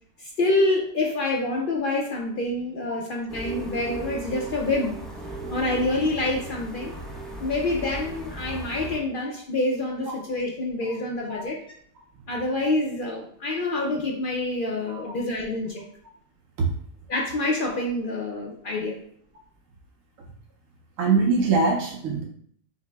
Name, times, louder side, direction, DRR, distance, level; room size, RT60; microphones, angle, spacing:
voice 1, 0.2-5.0 5.5-6.9 7.4-11.6 12.3-15.8 17.1-19.0, left 2 dB, 70° left, -1 dB, 0.4 m, -27 dB
sound 1, 3.3-9.0, right 2 dB, ahead, 0.4 m, -36 dB
voice 2, 21.0-22.2, right 4 dB, 70° right, 0 dB, 1.0 m, -23 dB
5.5 x 2.0 x 3.4 m, 0.63 s
omnidirectional pair, 1.5 m